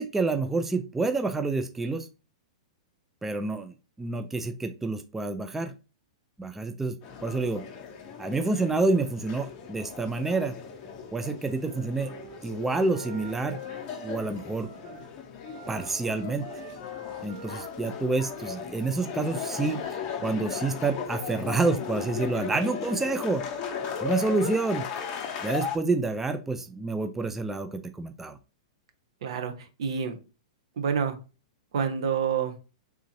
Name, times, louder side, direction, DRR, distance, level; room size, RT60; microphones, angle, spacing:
voice 1, 0.0-2.1 3.2-5.7 6.4-7.0 7.2-7.6 8.2-10.5 11.1-12.1 12.4-13.6 14.0-14.7 15.7-16.5 17.2-19.8 20.2-23.4 24.0-24.8 25.4-28.4, right 3 dB, 10° right, 8 dB, 0.3 m, -28 dB
sound 1, 7.0-25.8, left 6 dB, 35° left, 0.8 m, -37 dB
Wind instrument woodwind instrument, 11.4-15.1 15.4-19.0, left 1 dB, 40° right, 2.1 m, -44 dB
voice 2, 29.2-30.2 30.8-31.2 31.7-32.5, right 7 dB, 60° right, 6 dB, 0.7 m, -28 dB
3.5 x 2.7 x 2.9 m, 0.32 s
figure-of-eight pair, 105°, 3 cm